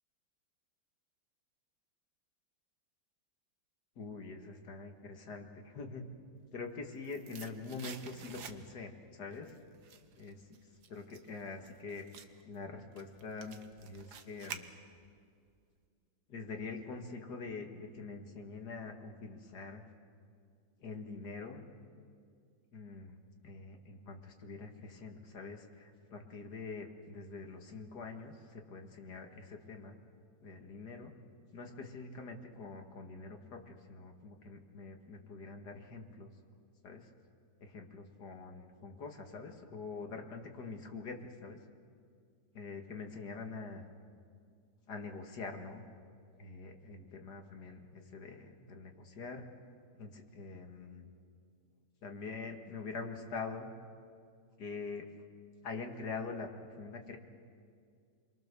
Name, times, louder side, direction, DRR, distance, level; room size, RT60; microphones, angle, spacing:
voice 1, 4.0-6.1 6.5-9.6 10.1-10.5 10.9-12.1 12.4-14.7 16.3-19.8 20.8-21.6 22.7-23.2 23.4-30.0 30.4-31.1 31.5-36.3 36.8-37.1 37.6-41.6 42.5-43.9 44.9-45.9 46.4-49.5 49.9-51.1 52.0-53.7 54.6-55.1 55.6-56.5 56.8-57.2, left 4 dB, 55° left, 3 dB, 2.5 m, -45 dB
sound 1, 6.6-9.0 9.3-15.2 15.5-15.6, right 7 dB, 60° right, 1.5 m, -50 dB
28.5 x 22.5 x 6.9 m, 2.2 s
omnidirectional pair, 2.1 m